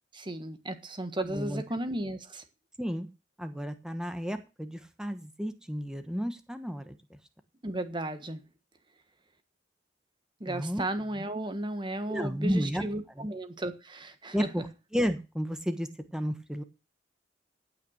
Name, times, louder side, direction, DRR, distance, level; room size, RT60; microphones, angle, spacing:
voice 1, 0.1-2.4 7.6-8.4 10.4-14.6, right 1 dB, 25° right, 1.5 m, -34 dB
voice 2, 1.2-1.6 2.8-3.1 3.4-7.2 10.5-10.8 12.1-12.8 13.2-13.3 14.3-14.7 14.9-16.6, equal, 5° right, 1.2 m, -32 dB
16.5 x 5.9 x 6.4 m
head